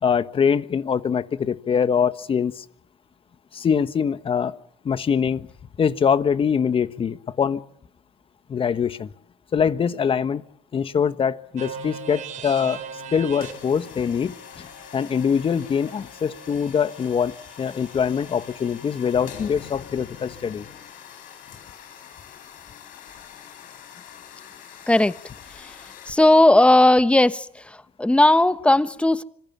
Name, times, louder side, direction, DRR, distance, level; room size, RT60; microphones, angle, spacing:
voice 1, 0.0-2.6 3.5-4.6 4.8-5.5 5.8-7.6 8.5-9.1 9.5-10.4 10.7-14.7 14.9-20.6, left 7 dB, 40° left, 1.4 m, -23 dB
sound 1, 11.6-19.5, right 6 dB, 60° right, 5.0 m, -41 dB
sound 2, 13.3-26.1, left 9 dB, 70° left, 7.4 m, -44 dB
voice 2, 24.9-25.2 25.6-25.7 26.1-27.5 28.0-29.2, left 1 dB, 10° left, 1.2 m, -16 dB
26.0 x 22.0 x 7.3 m
supercardioid pair, 85°, 14 cm